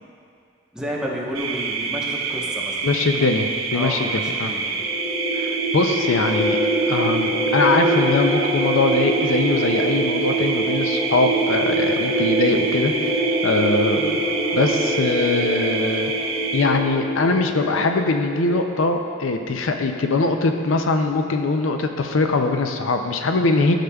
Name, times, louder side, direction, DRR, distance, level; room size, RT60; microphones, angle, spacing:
voice 1, 0.7-2.8 3.7-4.7, equal, 5° right, -5 dB, 1.0 m, -30 dB
sound 1, 1.3-16.6, right 4 dB, 80° right, 0.6 m, -27 dB
voice 2, 2.8-4.5 5.3-6.6 6.9-13.1 13.4-14.2 14.5-16.1 16.5-23.7, left 3 dB, 80° left, 5 dB, 0.5 m, -22 dB
sound 2, 4.7-19.0, right 1 dB, 45° left, 1.6 m, -25 dB
13.0 x 6.6 x 2.3 m, 2.3 s
head